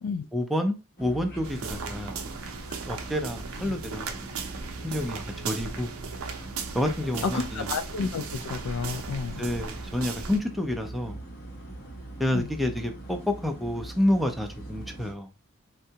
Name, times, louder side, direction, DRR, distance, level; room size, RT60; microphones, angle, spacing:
voice 1, 0.3-2.2 2.9-4.4 4.8-5.9 6.7-7.7 9.4-11.2 12.2-15.3, left 1 dB, ahead, 0.4 m, -29 dB
sound 1, 1.0-15.1, right 2 dB, 40° left, 0.8 m, -42 dB
sound 2, 1.4-10.4, right 5 dB, 65° right, 0.5 m, -37 dB
voice 2, 7.2-9.4 12.3-12.5, left 5 dB, 70° left, 0.4 m, -31 dB
3.7 x 2.2 x 2.8 m
head